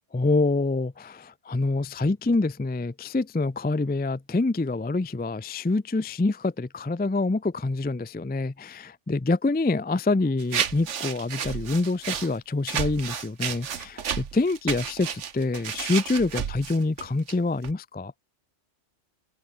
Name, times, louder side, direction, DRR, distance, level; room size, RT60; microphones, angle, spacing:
voice 1, 0.1-18.1, left 3 dB, 15° left, 0.3 m, -26 dB
sound 1, 10.4-12.3 12.7-17.3 17.6-17.7, right 8 dB, 85° right, 1.4 m, -31 dB
open air
omnidirectional pair, 1.2 m